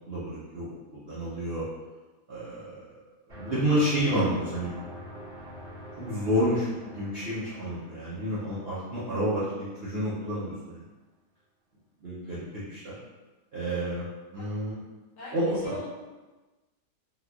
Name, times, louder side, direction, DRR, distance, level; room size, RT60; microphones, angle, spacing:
voice 1, 0.1-1.6 2.3-2.9 3.3-4.8 5.1-5.3 6.0-10.8 12.0-13.0 13.5-14.1 14.3-14.8 15.3-15.8, equal, 60° right, -9 dB, 0.6 m, -30 dB
sound 1, 3.3-10.0, equal, 35° right, 1.5 m, -46 dB
voice 2, 12.2-12.6 15.2-15.9, left 1 dB, 70° left, -7 dB, 1.6 m, -41 dB
3.6 x 2.7 x 2.3 m, 1.2 s
omnidirectional pair, 1.8 m